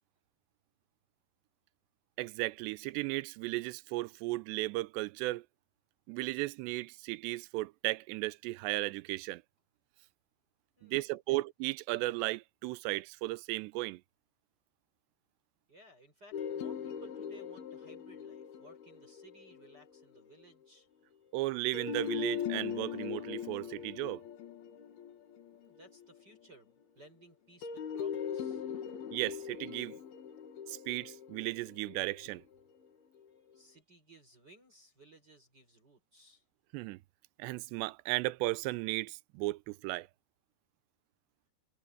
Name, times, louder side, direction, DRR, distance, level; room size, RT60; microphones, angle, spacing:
voice 1, 2.2-5.5 6.1-9.4 10.8-14.0 21.3-24.2 29.1-30.0 30.7-32.4 36.7-37.0 37.4-40.1, right 20 dB, 85° right, 2.8 m, -35 dB
voice 2, 10.8-11.4 15.7-20.9 25.5-28.7 33.5-36.5, right 2 dB, 20° right, 6.1 m, -59 dB
sound 1, 16.3-20.2 21.7-26.2 27.6-32.8, left 8 dB, 65° left, 3.7 m, -40 dB
omnidirectional pair, 5.0 m